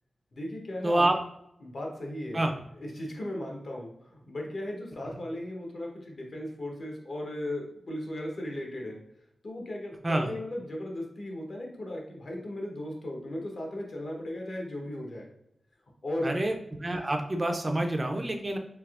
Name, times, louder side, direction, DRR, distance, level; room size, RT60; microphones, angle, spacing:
voice 1, 0.3-1.0 1.6-2.5 2.7-9.0 9.4-15.3 16.0-16.4, left 1 dB, 55° left, 0 dB, 0.8 m, -36 dB
voice 2, 0.8-1.1 2.3-2.5 5.0-5.1 10.0-10.3 16.2-16.5 16.8-18.6, right 1 dB, 25° right, 4 dB, 0.3 m, -27 dB
3.3 x 2.7 x 2.4 m, 0.77 s
wide cardioid pair, 110°, 0 cm